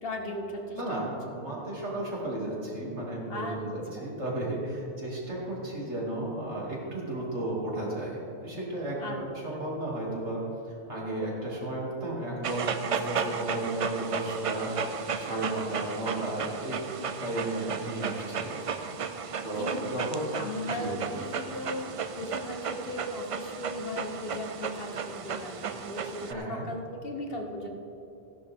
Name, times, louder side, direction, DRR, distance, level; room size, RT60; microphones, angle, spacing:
voice 1, 0.0-0.8 3.3-3.6 4.0-4.1 9.0-9.2 19.6-19.8 20.3-27.7, left 1 dB, 60° left, 3 dB, 1.4 m, -37 dB
voice 2, 0.7-16.8 17.2-18.7 19.4-20.2 20.7-21.1 26.2-26.7, right 1 dB, 85° right, -5 dB, 3.0 m, -34 dB
Dog, 12.4-26.3, right 6 dB, 65° right, 0.3 m, -34 dB
15.0 x 11.0 x 3.7 m, 2.9 s
omnidirectional pair, 1.1 m